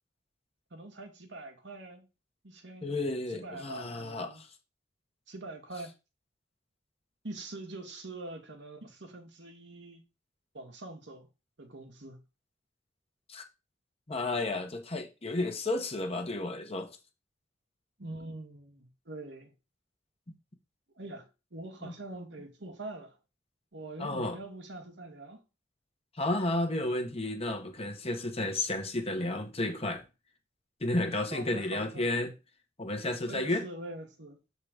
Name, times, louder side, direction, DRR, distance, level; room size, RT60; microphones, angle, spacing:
voice 1, 0.7-2.0 2.4-3.0 3.3-4.4 5.3-5.9 7.2-10.0 10.5-11.3 11.6-12.2 18.0-19.5 21.0-23.2 23.7-25.4 31.3-32.1 33.3-34.4, right 2 dB, 75° right, 1.7 m, -44 dB
voice 2, 2.8-4.5 13.3-13.4 14.1-16.9 21.8-21.9 24.0-24.4 26.2-30.0 30.8-32.3 32.8-33.6, left 2 dB, 35° left, 1.2 m, -32 dB
7.6 x 3.9 x 5.0 m
head